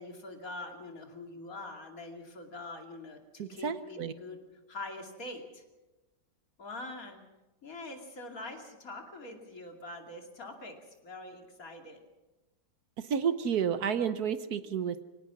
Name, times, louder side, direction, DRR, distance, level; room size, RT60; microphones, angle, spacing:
voice 1, 0.0-4.4 4.7-5.6 6.6-7.2 7.6-12.0, left 2 dB, 55° left, 3 dB, 3.0 m, -44 dB
voice 2, 3.4-4.1 13.0-15.0, right 7 dB, 65° right, 11 dB, 1.4 m, -31 dB
23.5 x 18.5 x 6.1 m, 1.1 s
omnidirectional pair, 1.8 m